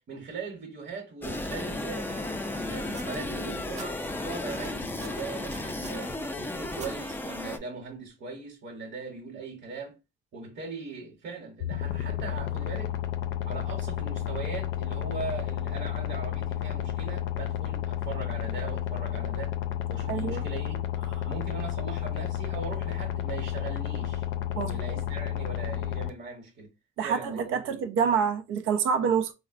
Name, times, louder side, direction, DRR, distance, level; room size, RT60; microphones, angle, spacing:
voice 1, 0.0-10.0 10.3-12.9 13.4-19.5 19.9-20.9 21.3-24.3 24.6-26.7 27.0-27.9, right 4 dB, 60° right, 1.0 m, -40 dB
sound 1, 1.2-7.6, left 2 dB, 10° left, 0.4 m, -34 dB
sound 2, 2.9-3.9 4.5-6.1 6.7-6.9 7.9-8.0, right 5 dB, 35° right, 0.6 m, -47 dB
sound 3, 11.6-26.1, left 11 dB, 80° left, 0.5 m, -31 dB
voice 2, 20.1-20.4 21.1-21.3 24.6-25.0 27.0-29.3, right 6 dB, 85° right, 0.5 m, -27 dB
3.8 x 2.1 x 2.5 m
cardioid pair, 90°, 20 cm